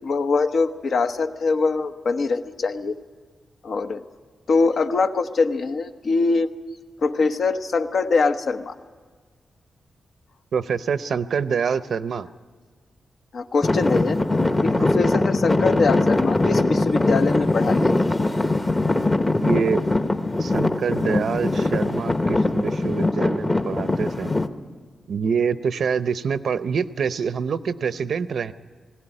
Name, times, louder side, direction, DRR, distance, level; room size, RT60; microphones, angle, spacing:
voice 1, 0.0-2.9 3.6-4.0 4.5-6.5 7.0-8.8 13.3-14.2 14.6-17.9, left 4 dB, 60° left, 7 dB, 1.0 m, -23 dB
voice 2, 10.5-12.3 14.8-15.0 19.4-19.9 20.4-24.3 25.1-28.5, right 6 dB, 70° right, 13 dB, 0.7 m, -26 dB
Traffic noise roadway noise / Engine, 13.6-24.5, left 2 dB, 20° left, 0.9 m, -21 dB
20.0 x 17.0 x 9.9 m, 1.5 s
wide cardioid pair, 130°, 0 cm